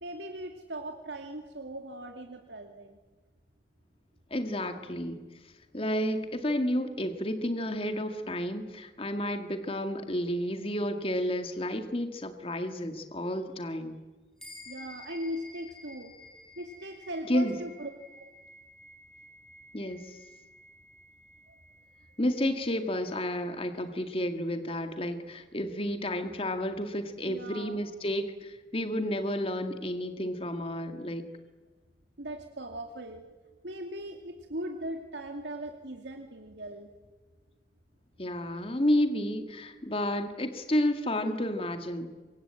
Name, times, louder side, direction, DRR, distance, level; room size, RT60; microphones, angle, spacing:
voice 1, 0.0-3.0 14.7-16.1 16.6-17.9 18.2-18.3 21.5-21.6 27.2-27.8 32.2-33.3 33.6-36.9, right 1 dB, 90° right, 4 dB, 2.6 m, -39 dB
voice 2, 4.3-14.0 17.3-17.6 19.7-20.2 22.2-31.3 38.2-42.1, left 1 dB, 30° left, 7 dB, 2.0 m, -31 dB
sound 1, 14.4-24.1, left 2 dB, 5° left, 6.8 m, -52 dB
27.5 x 24.5 x 8.9 m, 1.3 s
head